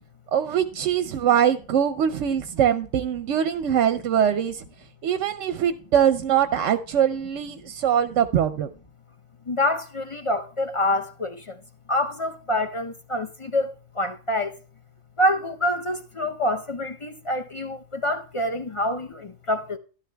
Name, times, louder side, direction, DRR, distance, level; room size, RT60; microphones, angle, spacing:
voice 1, 0.3-4.6 5.0-8.7, right 9 dB, 65° right, 0.9 m, -22 dB
voice 2, 9.5-11.6 11.9-14.6 15.2-19.8, left 1 dB, 35° left, 0.5 m, -26 dB
12.5 x 12.0 x 2.2 m
omnidirectional pair, 1.4 m